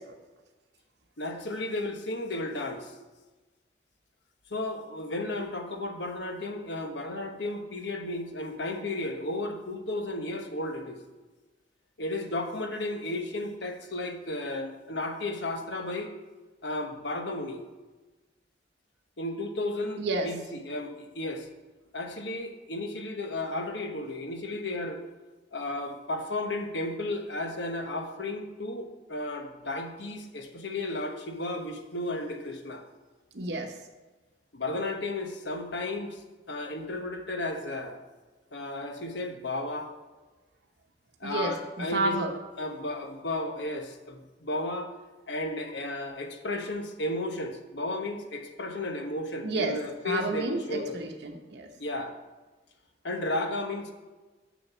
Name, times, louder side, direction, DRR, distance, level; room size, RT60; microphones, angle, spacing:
voice 1, 1.2-2.9 4.5-11.0 12.0-16.2 16.6-17.6 19.2-20.4 20.6-21.5 21.9-25.0 25.5-32.8 34.5-38.0 38.5-39.9 41.2-42.3 42.6-44.9 45.3-51.0 51.8-52.2 53.0-53.9, left 2 dB, 65° left, 4 dB, 1.2 m, -34 dB
voice 2, 20.0-20.3 33.3-33.7 41.2-42.3 49.4-49.8 50.0-51.7, right 2 dB, 60° right, 3 dB, 0.9 m, -30 dB
7.3 x 6.3 x 7.2 m, 1.2 s
head